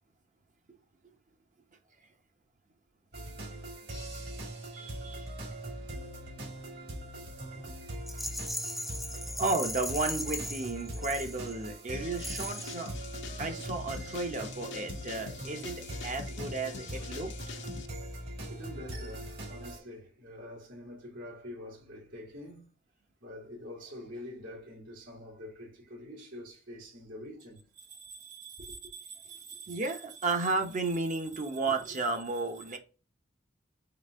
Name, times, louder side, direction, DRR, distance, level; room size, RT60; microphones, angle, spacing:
sound 1, 3.1-19.8, right 1 dB, 55° right, 2.2 m, -41 dB
voice 1, 4.7-5.3 9.4-12.9 13.4-17.3 27.8-32.8, right 3 dB, 40° right, 0.8 m, -34 dB
voice 2, 5.4-9.4 16.9-17.1 18.5-22.7 23.2-27.7, left 1 dB, 80° right, 2.3 m, -47 dB
Rattle, 8.1-11.7 12.2-12.9, left 1 dB, ahead, 0.4 m, -38 dB
sound 2, 11.9-17.9, left 4 dB, 65° left, 0.6 m, -45 dB
4.0 x 3.3 x 3.7 m
head